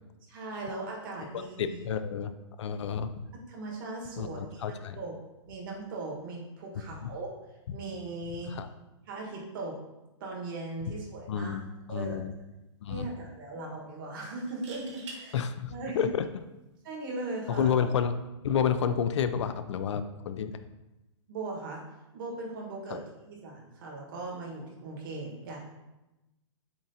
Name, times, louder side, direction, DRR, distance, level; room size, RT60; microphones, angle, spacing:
voice 1, 0.3-1.8 3.5-5.1 5.5-7.3 7.7-8.5 9.1-9.8 10.2-11.6 11.9-12.2 12.9-15.4 15.7-16.1 16.8-17.7 21.3-21.8 22.1-25.6, right 2 dB, 45° right, -1 dB, 1.3 m, -38 dB
voice 2, 1.6-2.3 2.6-3.1 4.2-5.0 7.0-7.1 8.5-8.7 11.3-11.6 11.9-12.3 12.8-13.1 15.3-16.3 17.6-18.1 18.4-20.5 22.9-23.0, left 7 dB, 70° left, 11 dB, 0.4 m, -30 dB
sound 1, 11.5-11.8 12.1-12.2 14.4-15.2 17.0-17.3, right 3 dB, 70° right, 1.4 m, -45 dB
7.1 x 2.5 x 2.7 m, 0.99 s
hypercardioid pair, 165°, 16 cm